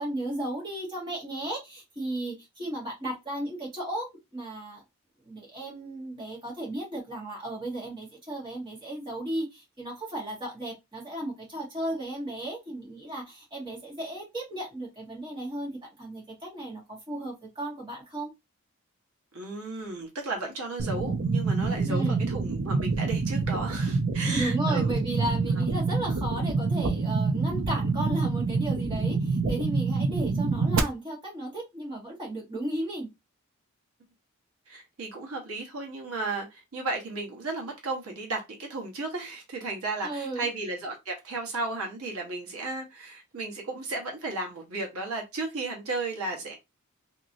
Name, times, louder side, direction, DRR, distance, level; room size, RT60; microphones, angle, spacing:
voice 1, 0.0-4.8 5.2-18.3 21.8-22.2 24.2-33.1 40.0-40.5, right 1 dB, 20° right, 1.3 m, -35 dB
voice 2, 19.3-24.9 25.6-25.7 34.7-46.6, right 3 dB, 80° right, 1.2 m, -34 dB
sound 1, 20.8-30.8, right 4 dB, 60° right, 0.5 m, -27 dB
2.9 x 2.9 x 2.7 m
head